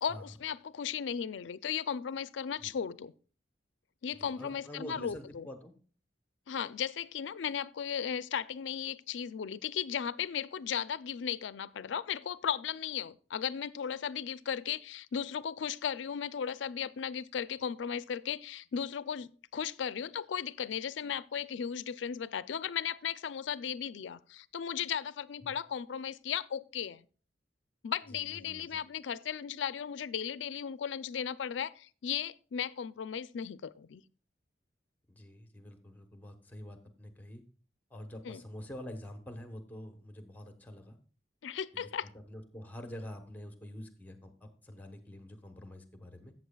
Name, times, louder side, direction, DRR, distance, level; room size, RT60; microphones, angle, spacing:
voice 1, 0.0-3.1 4.0-5.5 6.5-27.1 27.8-34.0 38.3-38.4 41.4-42.1, left 8 dB, 80° left, 0.4 m, -36 dB
voice 2, 4.2-5.7 25.4-25.5 28.1-28.8 35.1-37.4 37.9-41.0 41.7-46.3, left 1 dB, 10° left, 1.0 m, -47 dB
13.5 x 7.8 x 2.3 m
head